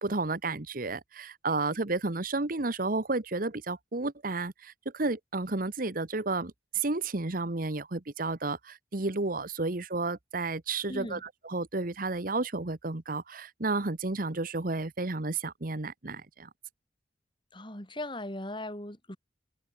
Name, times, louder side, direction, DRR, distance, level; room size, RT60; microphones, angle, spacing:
voice 1, 0.0-16.5, right 3 dB, 50° right, 1.3 m, -32 dB
voice 2, 10.9-11.2 17.5-19.2, left 1 dB, 25° left, 6.7 m, -38 dB
head